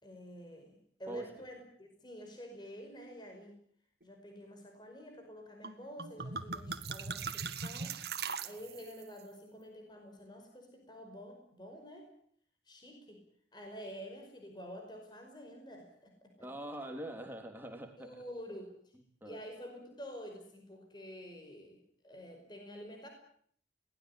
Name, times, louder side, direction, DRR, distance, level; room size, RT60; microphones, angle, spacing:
voice 1, 0.0-3.6 4.0-8.0 8.4-12.1 12.7-13.2 13.5-16.5 18.0-18.8 19.3-23.1, equal, 25° left, 4 dB, 5.2 m, -49 dB
sound 1, 5.6-5.7 6.0-9.0, right 5 dB, 65° right, 1.9 m, -39 dB
voice 2, 16.4-18.2 19.2-19.4, right 1 dB, 10° right, 4 dB, 3.5 m, -43 dB
22.5 x 19.0 x 9.8 m, 0.63 s
head